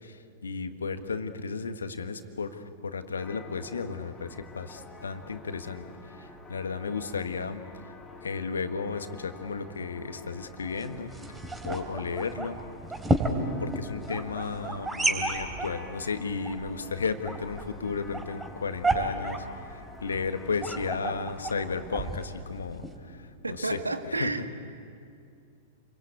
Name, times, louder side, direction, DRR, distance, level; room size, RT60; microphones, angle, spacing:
voice 1, 0.0-5.8 6.2-7.9 8.2-11.1 11.6-12.6 13.6-23.3 23.6-23.8 24.1-24.3, left 5 dB, 70° left, 8 dB, 1.7 m, -34 dB
sound 1, 3.2-22.1, left 2 dB, 10° left, 3.6 m, -49 dB
sound 2, 10.6-23.0, right 2 dB, 10° right, 3.5 m, -33 dB
voice 2, 23.4-24.5, right 2 dB, 80° right, 8 dB, 1.8 m, -31 dB
30.0 x 23.0 x 8.5 m, 2.4 s
figure-of-eight pair, 100°, 0 cm